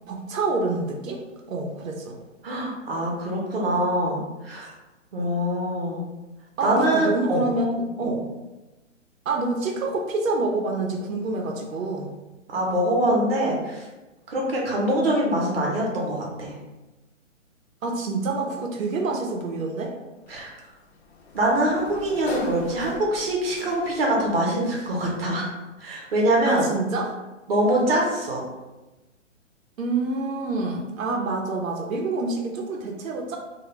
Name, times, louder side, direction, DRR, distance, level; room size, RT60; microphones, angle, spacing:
voice 1, 0.1-1.2 1.5-2.1 6.6-8.2 9.3-12.1 17.8-19.9 26.5-27.1 29.8-33.4, right 3 dB, 90° right, 1 dB, 0.6 m, -27 dB
voice 2, 2.4-4.7 5.1-6.1 6.6-7.5 8.0-8.1 12.5-13.8 14.3-16.5 20.3-20.5 21.3-25.5 25.8-26.7 27.5-28.4, right 1 dB, 50° right, -2 dB, 0.7 m, -24 dB
Sliding door, 20.3-24.2, left 4 dB, 55° left, 0.5 m, -40 dB
2.1 x 2.1 x 3.1 m, 1.1 s
hypercardioid pair, 175°, 39 cm